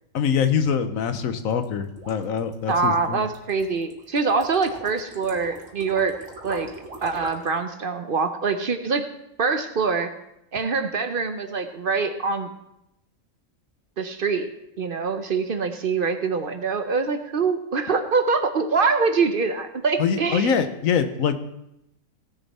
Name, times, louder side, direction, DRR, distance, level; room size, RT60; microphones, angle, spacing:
voice 1, 0.1-3.2 20.0-21.3, left 7 dB, 90° left, 10 dB, 1.2 m, -24 dB
sound 1, 1.5-7.6, right 2 dB, 70° right, 2.0 m, -40 dB
voice 2, 2.7-6.2 6.4-6.7 7.0-9.1 9.4-10.1 10.5-12.5 14.0-14.5 14.8-20.5, right 4 dB, 50° right, 8 dB, 0.8 m, -24 dB
17.0 x 6.9 x 4.2 m, 0.84 s
omnidirectional pair, 1.4 m